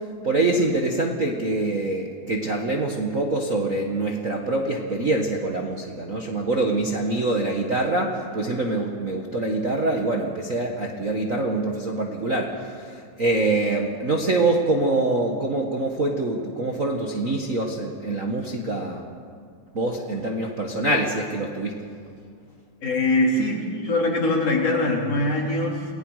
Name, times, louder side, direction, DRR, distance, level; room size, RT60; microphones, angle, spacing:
voice 1, 0.2-19.0 19.7-21.8, right 2 dB, 40° right, -1 dB, 1.2 m, -25 dB
voice 2, 22.8-25.9, left 2 dB, 55° left, -2 dB, 4.2 m, -22 dB
29.5 x 20.0 x 4.8 m, 2.1 s
omnidirectional pair, 3.4 m